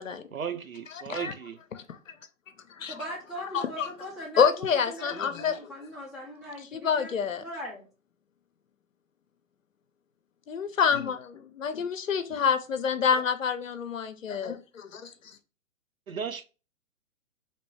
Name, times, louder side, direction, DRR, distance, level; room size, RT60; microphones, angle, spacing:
voice 1, 0.3-1.6 16.1-16.4, right 7 dB, 80° right, 0.6 m, -35 dB
voice 2, 2.9-7.2 7.4-7.8, equal, ahead, 0.7 m, -40 dB
voice 3, 3.5-3.9 4.4-5.6 6.7-7.4 10.5-15.1, left 6 dB, 65° left, 0.7 m, -27 dB
3.0 x 2.9 x 4.6 m
figure-of-eight pair, 125°, 41 cm